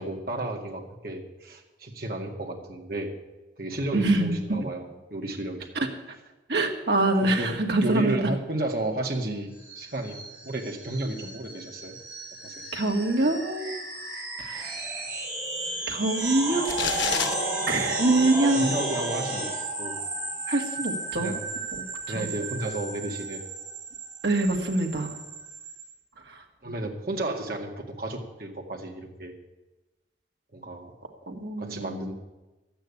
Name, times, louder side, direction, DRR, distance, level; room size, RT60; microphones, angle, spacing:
voice 1, 0.0-3.1 3.6-5.6 7.2-9.5 9.8-10.2 10.4-12.0 12.4-12.6 18.6-19.5 19.8-20.0 21.1-21.4 22.1-23.4 26.6-29.3 30.5-30.9 31.6-32.1, right 1 dB, 55° right, 1 dB, 2.0 m, -32 dB
voice 2, 3.9-4.7 5.8-5.9 6.5-8.2 12.7-13.7 14.4-14.8 15.9-16.7 17.7-18.7 20.5-21.3 22.1-22.3 24.2-25.1 26.3-26.4 31.3-32.1, right 2 dB, 70° right, 2 dB, 2.0 m, -25 dB
sound 1, 9.6-25.8, right 2 dB, 15° right, 5.4 m, -33 dB
sound 2, 16.7-17.3, left 8 dB, 85° left, 0.9 m, -28 dB
12.0 x 9.1 x 8.5 m, 1.1 s
head